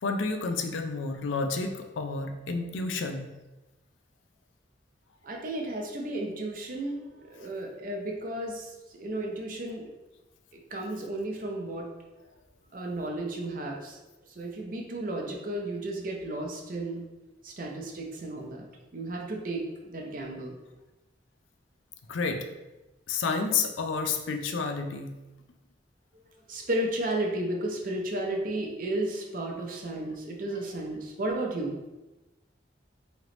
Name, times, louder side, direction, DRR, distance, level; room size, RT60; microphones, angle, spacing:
voice 1, 0.0-3.3 22.1-22.4 23.1-25.2, left 4 dB, 85° left, 5 dB, 0.5 m, -30 dB
voice 2, 5.2-8.7 9.0-9.9 10.7-11.9 12.7-14.0 14.3-17.0 17.4-18.6 18.9-20.6 26.5-31.8, right 1 dB, 45° right, 0 dB, 0.6 m, -33 dB
3.2 x 3.0 x 3.8 m, 1.1 s
head